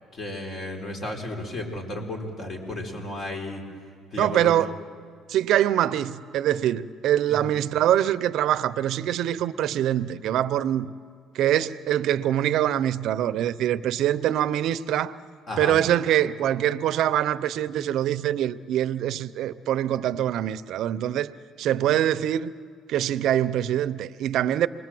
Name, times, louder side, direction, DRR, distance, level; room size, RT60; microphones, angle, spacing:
voice 1, 0.2-3.6 4.1-4.5 7.3-7.5 15.5-15.8, left 1 dB, 45° left, 4.5 m, -33 dB
voice 2, 4.2-4.8 5.3-10.9 11.3-15.2 15.6-21.3 21.6-22.5 22.9-24.7, right 11 dB, 65° right, 0.7 m, -24 dB
28.0 x 21.0 x 7.7 m
cardioid pair, 115°, 0 cm